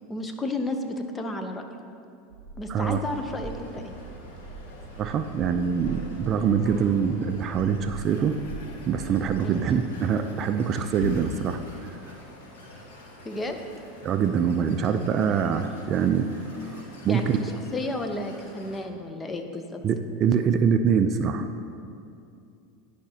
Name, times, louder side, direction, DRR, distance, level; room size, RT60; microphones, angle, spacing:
voice 1, 0.1-1.6 2.6-3.9 9.4-9.7 13.2-13.6 17.1-19.8, left 2 dB, 20° left, 5 dB, 0.7 m, -32 dB
sound 1, 2.3-9.8, right 4 dB, 85° right, 0.7 m, -42 dB
voice 2, 2.7-3.0 5.0-8.4 8.9-11.6 14.0-16.4 16.7-17.4 19.8-21.5, right 7 dB, 40° right, 8 dB, 0.3 m, -24 dB
sound 2, 2.8-18.8, left 2 dB, 75° left, 1.3 m, -44 dB
10.5 x 5.0 x 2.8 m, 2.5 s
hypercardioid pair, 95°, 0 cm